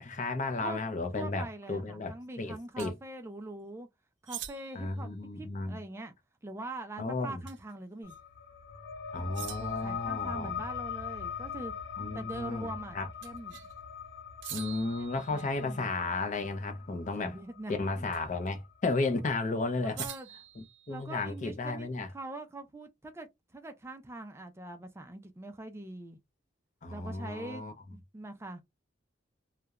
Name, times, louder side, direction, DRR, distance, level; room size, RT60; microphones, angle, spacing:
voice 1, 0.0-2.9 4.7-5.8 7.0-7.4 9.1-10.5 12.0-12.7 12.9-13.1 14.5-17.4 17.7-20.1 20.6-22.1 26.8-27.7, left 3 dB, 40° left, 0.5 m, -33 dB
voice 2, 1.1-3.9 4.2-5.1 5.4-6.1 6.4-8.1 9.4-11.7 12.1-13.6 15.3-15.9 17.2-18.0 19.8-20.3 20.9-26.2 26.9-28.6, right 2 dB, 15° right, 0.4 m, -43 dB
sound 1, 2.8-2.9 4.3-4.9 7.5-7.7 8.1-8.2 9.3-9.9 13.2-13.7 14.4-15.8 18.1-18.5 20.0-21.3, right 11 dB, 75° right, 0.5 m, -45 dB
sound 2, 8.0-19.2, left 7 dB, 85° left, 0.7 m, -41 dB
2.3 x 2.1 x 2.8 m
head